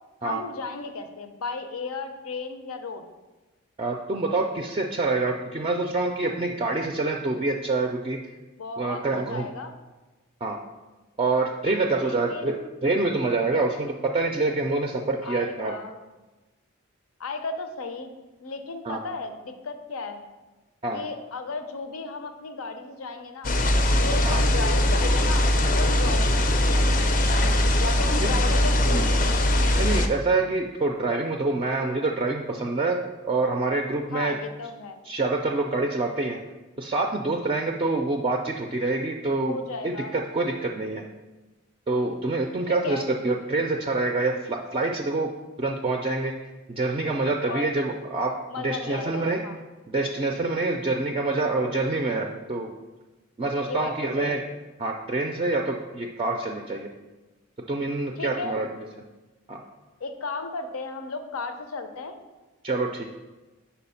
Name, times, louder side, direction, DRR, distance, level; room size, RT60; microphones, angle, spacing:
voice 1, 0.2-3.0 8.6-9.7 12.0-12.6 15.2-15.9 17.2-18.1 18.4-20.2 20.9-23.5 23.9-26.9 27.8-29.1 34.1-35.0 39.5-40.1 42.7-43.1 47.5-47.7 48.5-49.6 53.7-54.4 58.2-58.6 60.0-62.2, left 3 dB, 85° left, 8 dB, 0.6 m, -34 dB
voice 2, 3.8-8.2 8.8-9.5 10.4-10.6 11.2-12.6 12.8-15.8 18.8-19.0 20.8-21.0 24.2-24.4 28.2-28.3 28.8-29.1 29.7-33.0 33.2-34.3 35.0-36.4 36.8-39.6 39.8-41.0 41.9-45.3 45.6-46.3 46.7-48.3 48.6-49.4 49.9-52.7 53.4-54.4 54.8-56.9 57.7-58.7 59.5-59.6 62.6-63.0, right 3 dB, 25° right, 2 dB, 0.3 m, -26 dB
sound 1, 23.4-30.1, left 1 dB, 40° left, 0.4 m, -21 dB
5.0 x 4.3 x 5.5 m, 1.2 s
head